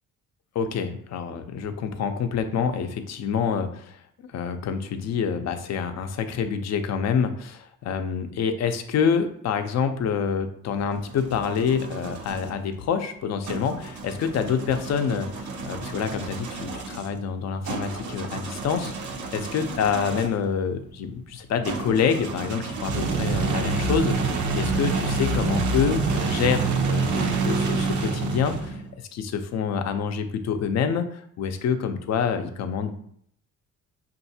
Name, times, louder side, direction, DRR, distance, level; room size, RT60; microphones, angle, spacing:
voice 1, 0.5-4.0 4.3-32.9, left 6 dB, 60° left, 7 dB, 0.6 m, -27 dB
sound 1, 10.7-12.5 13.4-20.5 21.6-28.9, right 4 dB, 75° right, 0.7 m, -28 dB
5.5 x 2.5 x 2.7 m, 0.65 s
cardioid pair, 90°, 30 cm